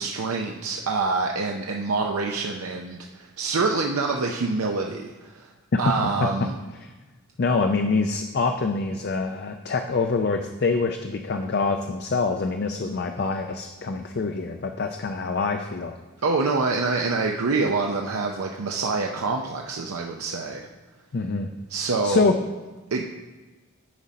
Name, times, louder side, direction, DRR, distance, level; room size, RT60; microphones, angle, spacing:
voice 1, 0.0-5.5 5.8-6.5 16.2-20.7 21.7-22.4 22.9-23.0, right 3 dB, 80° right, 1 dB, 0.6 m, -26 dB
voice 2, 5.7-6.5 6.8-6.9 7.4-16.0 21.1-21.5 22.0-22.3, left 4 dB, 50° left, 5 dB, 0.4 m, -25 dB
10.5 x 4.2 x 5.1 m, 1.2 s
head